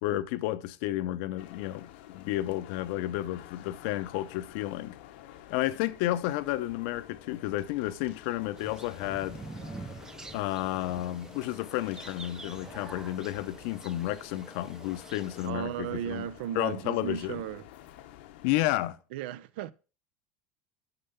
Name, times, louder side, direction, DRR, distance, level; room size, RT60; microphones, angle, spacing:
voice 1, 0.0-5.0 5.5-9.4 10.3-16.2 16.6-17.4 18.4-19.0, left 15 dB, 65° left, 0.6 m, -31 dB
sound 1, 1.4-18.9, left 12 dB, 85° left, 0.9 m, -50 dB
sound 2, 8.6-15.5, right 3 dB, 10° right, 0.5 m, -46 dB
voice 2, 15.4-17.7 19.1-19.7, right 11 dB, 80° right, 0.5 m, -35 dB
6.7 x 5.7 x 5.6 m
cardioid pair, 155°, 6 cm